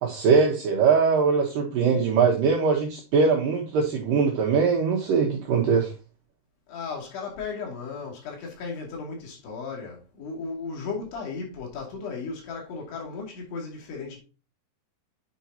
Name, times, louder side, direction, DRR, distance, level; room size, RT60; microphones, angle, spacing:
voice 1, 0.0-5.9, right 5 dB, 70° right, 2.5 m, -21 dB
voice 2, 6.7-14.2, left 4 dB, 85° left, 4.7 m, -35 dB
9.4 x 5.4 x 2.8 m
omnidirectional pair, 4.6 m